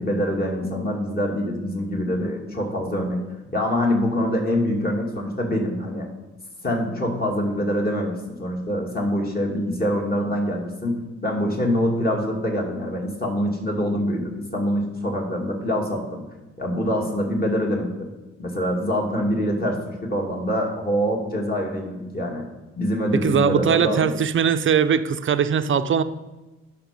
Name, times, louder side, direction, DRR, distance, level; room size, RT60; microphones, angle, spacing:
voice 1, 0.0-3.2 3.5-6.1 6.6-16.2 16.6-18.1 18.4-22.4 22.8-24.1, equal, 30° left, 0 dB, 2.4 m, -25 dB
voice 2, 23.1-26.0, right 7 dB, 40° right, 11 dB, 0.6 m, -20 dB
11.5 x 6.0 x 5.2 m, 1.1 s
cardioid pair, 90°, 30 cm